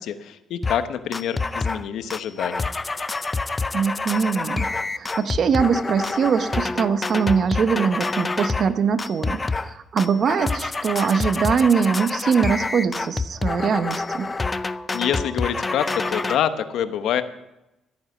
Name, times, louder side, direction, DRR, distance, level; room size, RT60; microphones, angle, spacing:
voice 1, 0.0-2.7 14.9-17.2, left 9 dB, 75° left, 10 dB, 1.0 m, -26 dB
sound 1, 0.6-0.8 1.1-8.7 9.0-9.7 10.0-16.4, left 3 dB, 25° left, 0.5 m, -27 dB
voice 2, 3.7-14.3, right 6 dB, 50° right, 12 dB, 0.9 m, -22 dB
14.0 x 8.9 x 6.6 m, 0.92 s
cardioid pair, 85°, 0 cm